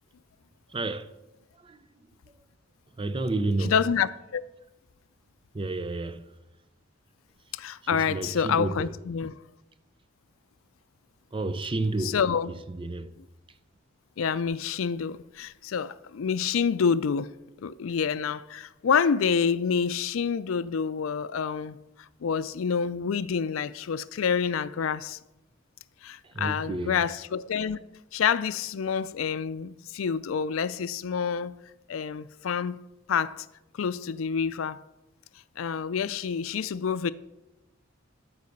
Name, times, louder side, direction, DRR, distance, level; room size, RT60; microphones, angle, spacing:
voice 1, 0.7-1.1 1.6-1.8 3.0-3.7 5.5-6.2 7.9-8.9 11.3-12.2 12.7-13.1 26.2-27.0, right 2 dB, 25° right, 0.5 m, -30 dB
voice 2, 3.6-4.4 7.5-9.4 12.0-12.5 14.2-17.3 17.6-21.8 22.2-25.2 26.0-27.8 28.1-31.6 31.9-32.8 33.1-33.5 33.8-34.8 35.6-37.1, left 6 dB, 85° left, 0.4 m, -27 dB
13.5 x 4.8 x 6.6 m
head